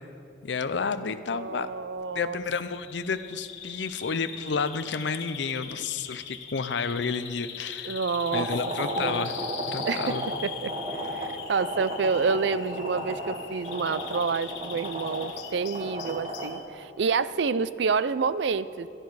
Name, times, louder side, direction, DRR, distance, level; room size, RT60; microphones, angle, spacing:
voice 1, 0.4-1.7 2.1-8.0 8.3-9.4 9.7-10.3, left 5 dB, 70° left, 12 dB, 0.6 m, -31 dB
voice 2, 1.0-2.4 7.9-8.5 9.0-9.3 9.8-10.1 10.4-10.7 11.1-18.9, right 5 dB, 65° right, 16 dB, 0.4 m, -28 dB
Bird vocalization bird call bird song, 2.6-16.6, left 8 dB, 85° left, 1.2 m, -41 dB
sound 1, 8.3-16.6, equal, 30° right, 1.4 m, -34 dB
17.0 x 11.5 x 4.8 m, 2.7 s
head